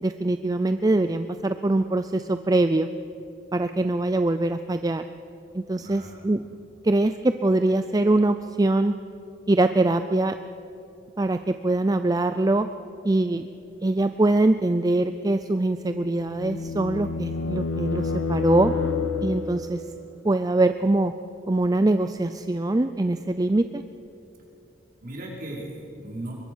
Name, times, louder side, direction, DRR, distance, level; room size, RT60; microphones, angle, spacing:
voice 1, 0.0-2.9 3.5-5.0 5.5-6.4 6.8-8.9 9.5-10.4 11.2-12.7 13.0-13.4 13.8-18.7 19.2-19.8 20.2-21.1 21.5-23.8, right 2 dB, 20° right, 9 dB, 0.4 m, -23 dB
voice 2, 5.8-6.3 25.0-26.3, right 1 dB, 50° right, -3 dB, 5.3 m, -37 dB
sound 1, 15.7-19.7, left 4 dB, 85° left, 1.6 m, -28 dB
23.5 x 22.0 x 6.3 m, 2.8 s
head